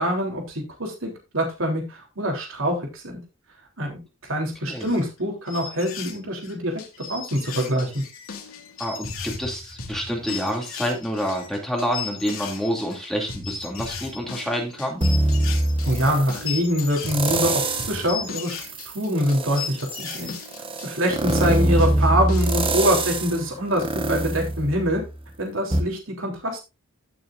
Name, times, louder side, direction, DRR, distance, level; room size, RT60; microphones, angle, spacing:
voice 1, 0.0-3.2 3.8-6.7 7.1-8.0 15.8-17.6 17.9-18.5 18.8-20.3 20.8-25.0 25.4-26.6, equal, 65° right, 1 dB, 3.3 m, -24 dB
sound 1, 4.5-5.2 5.5-6.5 6.9-18.7 19.2-19.3 19.5-20.4, left 7 dB, 70° left, 2.8 m, -36 dB
sound 2, 6.7-23.1, left 3 dB, 90° left, 2.6 m, -39 dB
voice 2, 8.8-15.0, equal, ahead, 0 dB, 2.5 m, -28 dB
sound 3, 15.0-16.4 17.0-18.1 18.6-25.3 25.7-25.8, right 1 dB, 25° right, 1.1 m, -24 dB
15.5 x 6.3 x 2.5 m, 0.26 s
head